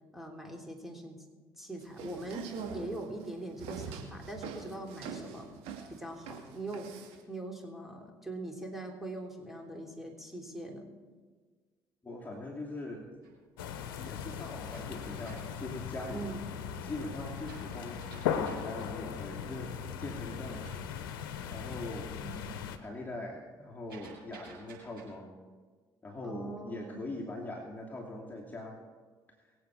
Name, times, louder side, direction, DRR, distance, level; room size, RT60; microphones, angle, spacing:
voice 1, 0.1-1.2 1.6-5.5 5.9-6.9 7.3-10.9 16.1-16.5 22.1-22.5 26.2-27.0, right 2 dB, ahead, 1 dB, 3.4 m, -42 dB
sound 1, 1.8-7.2, right 6 dB, 65° right, 2.4 m, -43 dB
voice 2, 12.0-13.1 14.0-16.3 16.8-20.7 21.4-22.1 22.8-25.4 26.0-28.8, left 1 dB, 15° left, -3 dB, 2.7 m, -42 dB
sound 2, 12.9-16.5 17.0-21.8 22.2-22.6 22.9-25.1, right 4 dB, 85° right, 5.6 m, -56 dB
sound 3, 13.6-22.8, left 8 dB, 75° left, 1.0 m, -38 dB
23.5 x 8.4 x 4.8 m, 1.5 s
hypercardioid pair, 55°, 11 cm